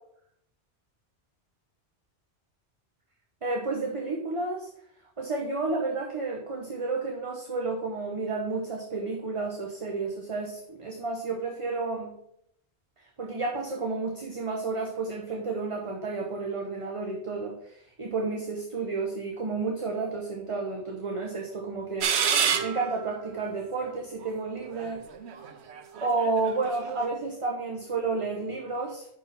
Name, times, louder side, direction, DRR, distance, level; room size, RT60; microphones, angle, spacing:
voice 1, 3.4-4.7 5.2-12.1 13.2-22.1 22.6-25.0 26.0-29.1, right 3 dB, 30° right, 0 dB, 0.9 m, -31 dB
sound 1, 22.0-23.1 23.9-24.0 24.7-27.1, right 7 dB, 70° right, 1.0 m, -28 dB
5.6 x 4.8 x 5.9 m, 0.73 s
omnidirectional pair, 1.2 m